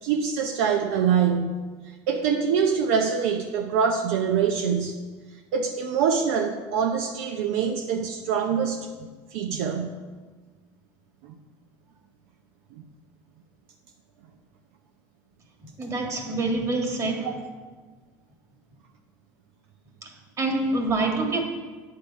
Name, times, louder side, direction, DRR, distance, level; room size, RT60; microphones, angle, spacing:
voice 1, 0.0-1.6 2.1-5.0 5.5-8.9 9.3-10.0 11.2-11.3 12.8-12.9 17.2-17.3, right 7 dB, 80° right, 4 dB, 0.7 m, -24 dB
voice 2, 15.8-17.4 20.0-21.4, right 2 dB, 35° right, 2 dB, 1.9 m, -26 dB
8.9 x 6.6 x 5.4 m, 1.4 s
supercardioid pair, 105°, 9 cm